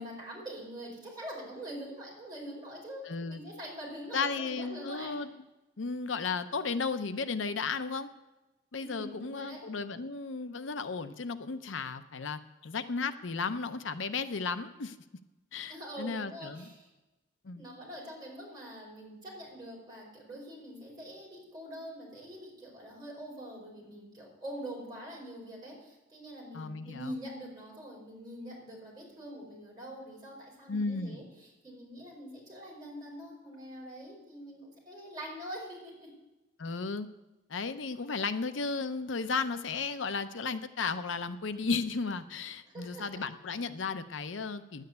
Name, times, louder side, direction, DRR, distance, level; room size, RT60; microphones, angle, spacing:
voice 1, 0.0-5.2 8.8-9.6 15.6-16.9 17.6-36.1 42.6-43.2, equal, 20° right, -4 dB, 5.0 m, -44 dB
voice 2, 3.1-3.4 4.1-5.3 5.8-8.1 8.7-15.0 15.5-16.6 17.4-17.6 26.5-27.1 30.7-31.2 36.6-37.1 37.5-44.8, left 4 dB, 85° left, 11 dB, 0.7 m, -34 dB
10.5 x 9.1 x 8.0 m, 1.0 s
head